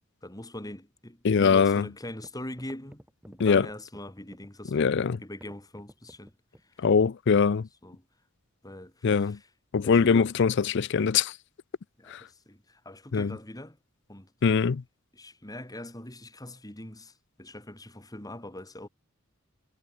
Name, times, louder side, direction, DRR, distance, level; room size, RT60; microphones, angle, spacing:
voice 1, 0.2-4.9 5.2-6.3 6.7-6.9 7.8-8.0 8.6-9.5 9.8-10.3 12.0-13.8 14.1-14.3 15.1-18.9, left 1 dB, 20° left, 3.8 m, -42 dB
voice 2, 1.2-1.9 3.4-3.7 4.7-5.2 6.8-7.7 9.0-9.4 9.7-11.3 12.1-12.2 13.1-13.3 14.4-14.8, left 5 dB, 60° left, 0.5 m, -22 dB
sound 1, 2.1-6.7, equal, 5° right, 3.7 m, -52 dB
head